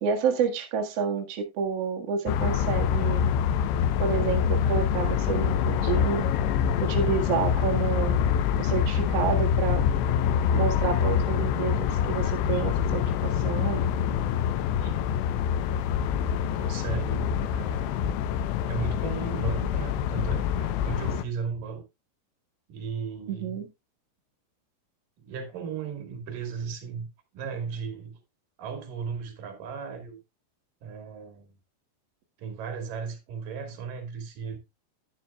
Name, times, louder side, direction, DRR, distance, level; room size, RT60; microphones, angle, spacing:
voice 1, 0.0-3.4 4.0-6.3 6.8-8.2 8.6-9.8 10.5-13.0 13.4-13.9 23.3-23.7, right 6 dB, 75° right, 1.4 m, -29 dB
sound 1, 2.3-21.2, left 8 dB, 80° left, 2.7 m, -25 dB
voice 2, 14.8-15.2 16.5-18.1 18.7-21.8 22.7-23.6 25.2-27.1 27.3-28.2 28.6-30.2 30.8-31.5 32.4-34.6, right 6 dB, 55° right, 2.9 m, -36 dB
10.5 x 10.5 x 2.3 m
omnidirectional pair, 5.6 m